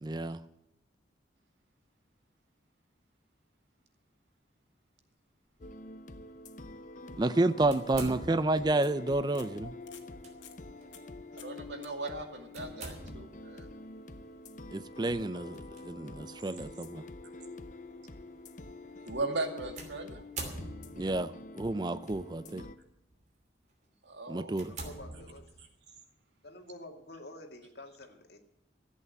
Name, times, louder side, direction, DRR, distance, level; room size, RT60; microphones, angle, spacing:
voice 1, 0.0-0.4 7.2-9.7 14.7-15.6 15.8-17.0 21.0-22.6 24.3-24.7, right 2 dB, 25° right, 14 dB, 0.4 m, -30 dB
sound 1, 5.5-5.8 7.2-8.5 8.9-9.0 9.3-9.5 9.8-10.1 10.4-10.6 10.9-11.1 11.4-11.6 11.8-11.9 15.0-15.1, left 4 dB, 85° left, 1.8 m, -52 dB
sound 2, 5.6-22.8, left 2 dB, 45° left, 0.7 m, -47 dB
sound 3, 7.7-8.7 10.0-10.3 10.8-10.9 12.5-13.4 15.5-15.8 16.6-16.7 19.8-21.2 22.1-22.5 23.1-23.3 23.8-23.9 24.5-25.7, right 2 dB, 40° right, 2.8 m, -43 dB
voice 2, 11.4-13.7 19.1-20.2 24.0-24.5, right 2 dB, 80° right, 5 dB, 2.3 m, -38 dB
voice 3, 24.6-25.5 26.4-28.4, left 1 dB, 60° left, 4 dB, 2.1 m, -49 dB
14.5 x 8.2 x 8.3 m, 0.86 s
head